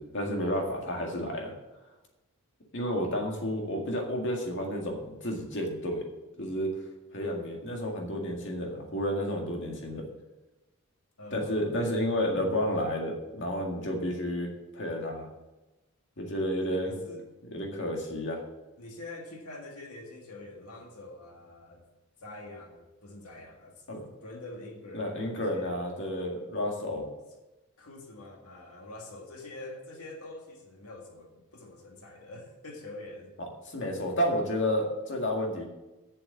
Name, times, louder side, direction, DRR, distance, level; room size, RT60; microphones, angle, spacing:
voice 1, 0.0-1.5 2.7-6.1 6.4-6.7 7.1-10.1 11.3-15.3 16.2-17.0 17.5-18.4 23.9-24.1 24.9-27.1 33.4-35.6, equal, 55° left, 0 dB, 2.0 m, -31 dB
voice 2, 11.2-12.5 16.9-17.2 18.8-21.8 22.2-23.8 24.2-25.8 27.8-33.3, left 2 dB, 80° left, 1 dB, 1.9 m, -45 dB
7.4 x 6.9 x 7.5 m, 1.1 s
head